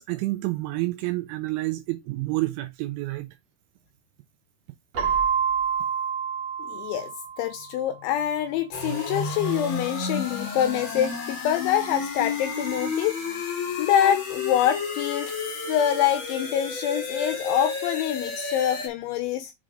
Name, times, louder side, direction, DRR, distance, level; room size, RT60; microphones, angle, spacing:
voice 1, 0.0-3.3, right 20 dB, 80° right, 2.8 m, -29 dB
Keyboard (musical), 4.9-7.7, right 7 dB, 50° right, 2.1 m, -27 dB
voice 2, 6.6-7.1 7.4-13.5 13.8-15.3 15.7-19.5, left 10 dB, 80° left, 2.9 m, -25 dB
sound 1, 8.7-18.9, left 4 dB, 40° left, 2.1 m, -31 dB
7.6 x 3.6 x 4.9 m
omnidirectional pair, 5.7 m